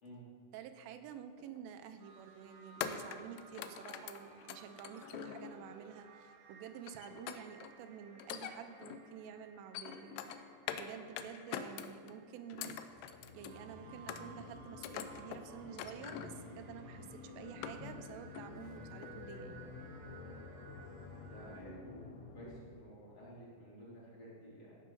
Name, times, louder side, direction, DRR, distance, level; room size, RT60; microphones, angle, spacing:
voice 1, 0.5-10.4 10.8-19.7, right 8 dB, 90° right, 8 dB, 3.3 m, -50 dB
sound 1, 1.4-1.6 2.8-5.8 6.9-7.7 8.2-9.1 9.5-10.9 11.2-12.1 12.5-13.6 14.1-14.5 14.8-15.4 15.8-16.4 16.9-17.0 17.4-18.1 18.4-18.7 19.0-19.1, left 9 dB, 85° left, 2.4 m, -44 dB
sound 2, 2.0-21.6, right 5 dB, 70° right, 2.3 m, -60 dB
sound 3, 12.9-22.6, left 3 dB, 70° left, 2.9 m, -51 dB
voice 2, 21.1-24.8, right 1 dB, 35° left, -8 dB, 3.6 m, -53 dB
14.5 x 7.9 x 5.5 m, 2.3 s
omnidirectional pair, 5.5 m